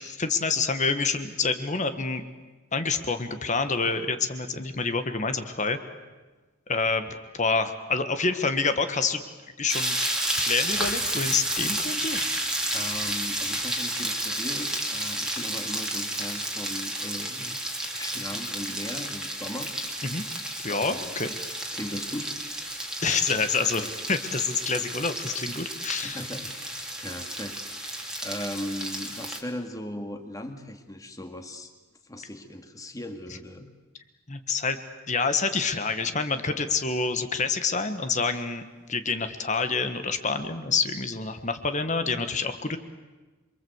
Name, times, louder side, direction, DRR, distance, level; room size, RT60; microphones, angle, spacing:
voice 1, 0.0-2.2 2.7-5.8 6.7-9.2 9.6-10.0 10.4-12.2 20.0-20.2 20.6-21.3 23.0-26.2 34.3-34.8 35.1-38.6 38.9-42.8, left 4 dB, 35° left, 9 dB, 1.5 m, -27 dB
sound 1, 9.7-29.4, right 1 dB, 5° right, 2.7 m, -31 dB
voice 2, 12.7-17.6 18.0-19.7 20.7-21.1 21.7-22.8 26.0-31.7 32.0-33.7, left 1 dB, 15° left, 6 dB, 2.2 m, -38 dB
28.0 x 23.0 x 8.1 m, 1.2 s
head